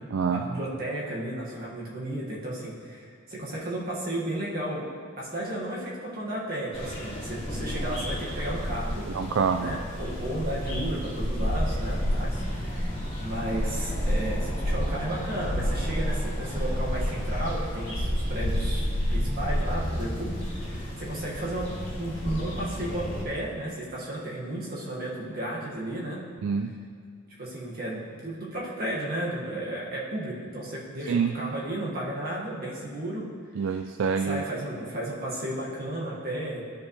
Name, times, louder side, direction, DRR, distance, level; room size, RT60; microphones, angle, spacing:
voice 1, 0.3-4.9 5.2-9.1 9.6-26.2 27.4-33.3 34.2-36.6, right 1 dB, 50° right, -5 dB, 1.7 m, -33 dB
sound 1, 6.7-23.2, equal, 30° left, 2.2 m, -30 dB
voice 2, 9.1-9.8 26.4-26.7 31.1-31.3 33.6-34.4, right 6 dB, 70° right, 6 dB, 0.3 m, -26 dB
12.0 x 5.3 x 3.2 m, 2.2 s
head